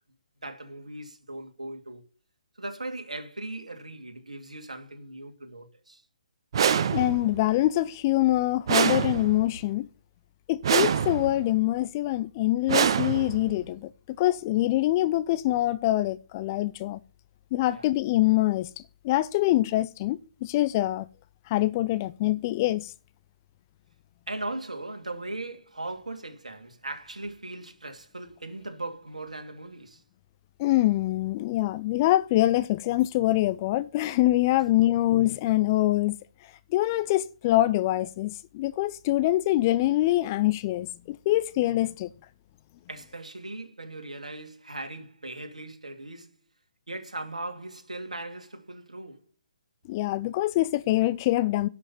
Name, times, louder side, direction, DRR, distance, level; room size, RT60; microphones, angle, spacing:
voice 1, 0.4-2.0 2.6-6.0 17.7-17.9 21.9-22.0 24.3-30.0 34.5-34.7 42.9-46.3 46.9-49.3, right 2 dB, 70° right, 2.4 m, -39 dB
sound 1, 6.5-7.4 8.7-9.6 10.6-11.5 12.7-13.6, right 7 dB, 40° right, 0.8 m, -25 dB
voice 2, 6.9-9.9 10.5-17.0 17.5-18.7 19.0-21.0 21.5-22.9 30.6-36.2 36.7-42.1 49.9-51.7, left 16 dB, 25° left, 0.6 m, -24 dB
11.0 x 6.4 x 8.5 m
figure-of-eight pair, 135°, 4 cm